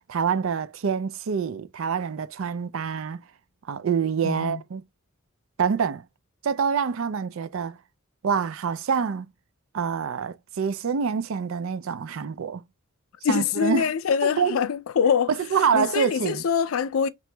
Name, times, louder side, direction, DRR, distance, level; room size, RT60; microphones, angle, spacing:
voice 1, 0.1-3.2 3.7-4.8 5.6-6.0 6.4-7.8 8.2-9.3 9.7-12.6 13.3-13.9 14.2-14.6 15.5-16.4, right 6 dB, 65° right, 0.4 m, -26 dB
voice 2, 4.2-4.6 13.2-15.3 15.7-17.1, left 7 dB, 70° left, 0.4 m, -24 dB
6.0 x 3.0 x 2.2 m
head